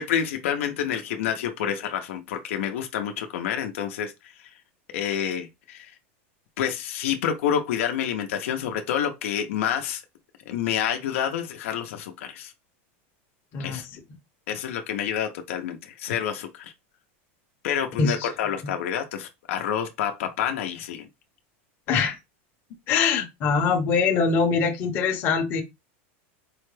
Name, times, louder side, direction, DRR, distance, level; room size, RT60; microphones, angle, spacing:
voice 1, 0.0-4.5 4.9-5.9 6.6-10.0 10.5-12.5 13.6-13.9 14.5-16.7 17.6-21.1, left 9 dB, 80° left, 0.7 m, -28 dB
voice 2, 22.9-25.6, left 5 dB, 30° left, 0.8 m, -23 dB
4.8 x 2.2 x 3.2 m
supercardioid pair, 165°, 7 cm